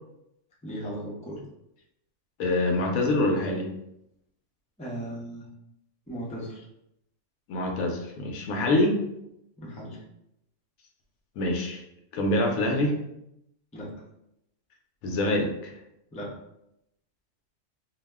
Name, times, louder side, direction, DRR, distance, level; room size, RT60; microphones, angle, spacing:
voice 1, 0.6-1.4 4.8-5.4 6.1-6.6 9.6-10.0 13.7-14.0 16.1-16.4, equal, 10° left, -5 dB, 0.4 m, -37 dB
voice 2, 2.4-3.7 7.5-9.0 11.4-11.8 12.1-13.0 15.0-15.7, left 1 dB, 85° left, 2 dB, 1.1 m, -25 dB
2.7 x 2.1 x 3.3 m, 0.82 s
omnidirectional pair, 1.4 m